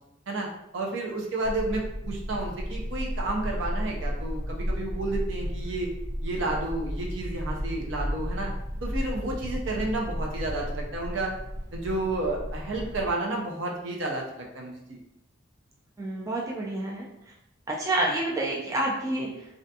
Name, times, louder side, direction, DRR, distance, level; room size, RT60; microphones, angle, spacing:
voice 1, 0.7-5.9 6.2-8.5 8.8-11.3 11.7-15.0, right 2 dB, 70° right, 0 dB, 0.5 m, -31 dB
sound 1, 1.4-13.1, equal, 40° right, 0.8 m, -33 dB
voice 2, 16.0-17.1 17.7-19.6, right 1 dB, 15° right, -3 dB, 0.3 m, -29 dB
2.4 x 2.2 x 2.7 m, 0.85 s
head